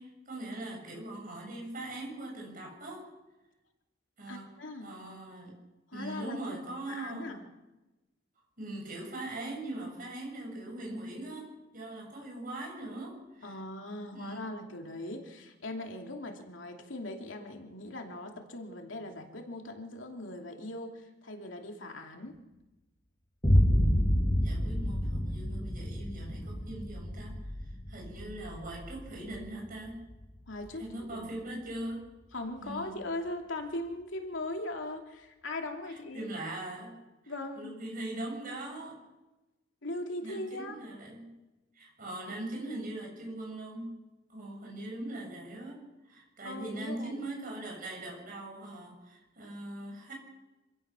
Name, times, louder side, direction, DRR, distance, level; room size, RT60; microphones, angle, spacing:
voice 1, 0.0-3.1 4.2-4.5 4.8-5.5 5.9-7.4 8.6-13.5 14.1-14.4 24.4-27.4 27.6-30.0 30.8-32.0 32.6-33.0 36.1-39.0 40.2-41.3 41.8-44.0 44.3-50.1, right 1 dB, 45° right, 0 dB, 7.2 m, -41 dB
voice 2, 4.3-4.9 5.9-6.6 6.9-7.4 13.4-22.4 30.5-31.3 32.3-36.3 37.3-37.8 39.8-40.8 46.4-47.3, left 2 dB, 90° left, 3 dB, 2.7 m, -40 dB
Boom, 23.4-31.3, equal, 25° left, 2.1 m, -29 dB
26.0 x 16.0 x 6.2 m, 1.1 s
head